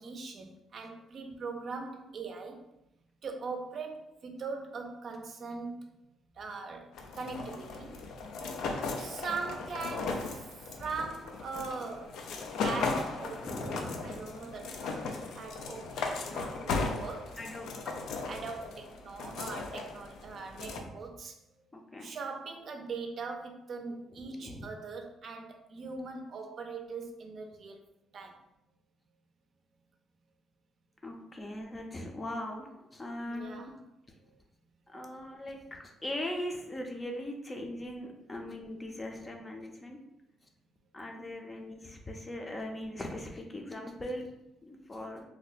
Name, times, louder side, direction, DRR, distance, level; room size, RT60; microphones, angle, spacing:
voice 1, 0.0-2.6 3.2-5.8 6.4-6.9 7.1-8.1 9.0-12.2 12.6-13.5 14.0-17.3 18.3-21.3 22.0-27.8 28.1-28.4 33.2-33.7 34.9-35.0, right 4 dB, 55° right, 3 dB, 0.5 m, -41 dB
sound 1, 6.9-20.8, left 4 dB, 80° left, 0.4 m, -37 dB
voice 2, 13.4-14.2 17.4-17.7 20.7-20.9 21.7-22.1 24.2-24.7 31.0-33.7 34.9-40.0 40.9-44.3 44.6-45.2, left 1 dB, 25° left, 2 dB, 0.5 m, -40 dB
2.7 x 2.1 x 4.0 m, 0.87 s
cardioid pair, 90°, 0 cm